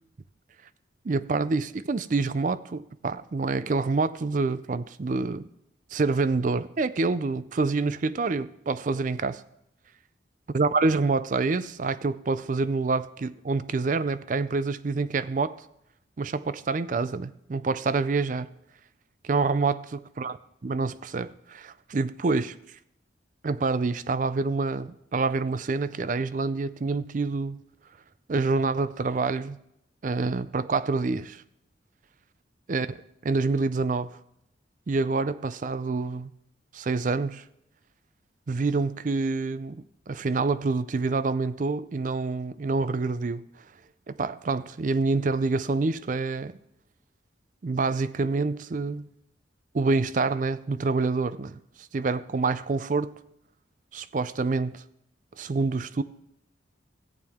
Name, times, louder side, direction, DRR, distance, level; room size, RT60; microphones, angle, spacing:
voice 1, 1.0-5.5 5.9-9.4 10.5-15.6 16.2-18.5 19.2-20.4 20.6-22.6 23.4-27.6 28.3-29.6 30.0-31.4 32.7-32.9 33.2-34.2 34.9-36.3 36.7-37.4 38.5-43.4 44.1-46.5 47.6-49.1 49.7-53.1 53.9-54.8 55.4-56.0, right 3 dB, 45° right, 0.4 m, -27 dB
14.5 x 9.0 x 3.5 m
head